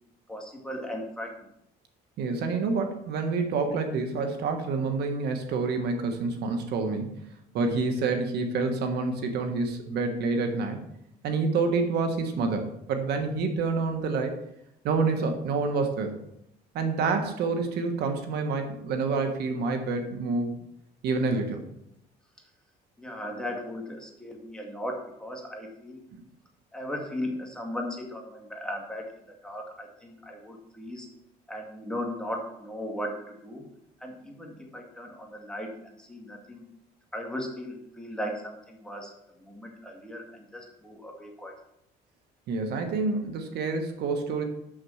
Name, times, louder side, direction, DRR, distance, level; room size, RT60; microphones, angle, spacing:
voice 1, 0.3-1.3 23.0-26.0 26.7-29.0 29.4-31.1 31.5-33.6 34.0-36.6 37.1-39.1 39.4-41.5, left 1 dB, 5° left, 0 dB, 2.1 m, -37 dB
voice 2, 2.2-7.2 7.5-10.8 11.2-14.4 14.8-16.2 16.7-20.5 21.0-21.6 42.5-44.4, right 4 dB, 75° right, 6 dB, 1.4 m, -28 dB
6.9 x 6.3 x 6.4 m, 0.78 s
cardioid pair, 110°, 17 cm